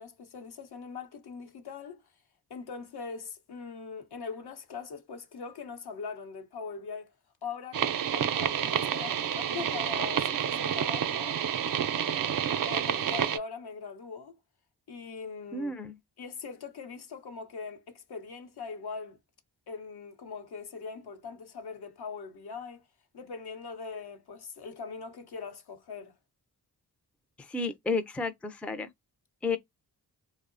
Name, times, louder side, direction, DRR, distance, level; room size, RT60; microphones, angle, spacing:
voice 1, 0.0-2.0 2.5-7.1 7.4-11.4 12.7-14.4 14.9-15.7 16.2-19.2 19.7-22.9 23.1-26.1, left 5 dB, 70° left, 0.8 m, -41 dB
sound 1, 7.7-13.4, right 9 dB, 55° right, 0.5 m, -29 dB
voice 2, 15.5-15.9 27.4-28.9 29.4-29.6, left 3 dB, 5° left, 0.4 m, -32 dB
2.7 x 2.0 x 2.5 m
cardioid pair, 65°, 40 cm